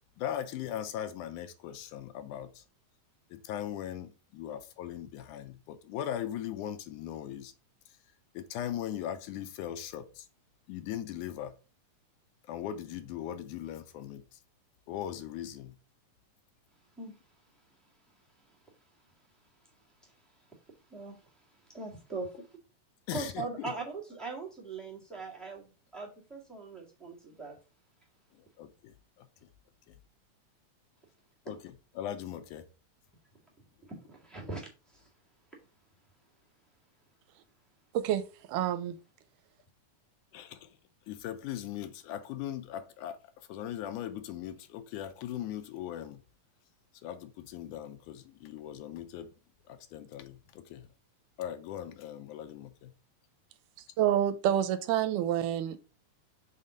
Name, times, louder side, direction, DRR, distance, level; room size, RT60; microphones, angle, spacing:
voice 1, 0.2-2.6 3.3-7.5 7.9-8.0 8.3-10.3 10.7-11.6 12.5-14.4 14.9-15.8 23.1-23.7 28.4-29.5 29.9-30.0 31.5-32.7 40.3-40.8 41.1-46.2 47.0-49.3 49.7-50.9 51.4-52.9, left 11 dB, 80° left, 2.1 m, -39 dB
voice 2, 20.9-21.3 21.7-22.5 23.1-27.6 33.8-35.1, right 3 dB, ahead, 0.7 m, -41 dB
voice 3, 38.5-39.0 54.0-55.8, right 11 dB, 85° right, 2.1 m, -28 dB
5.8 x 3.8 x 5.0 m
omnidirectional pair, 3.7 m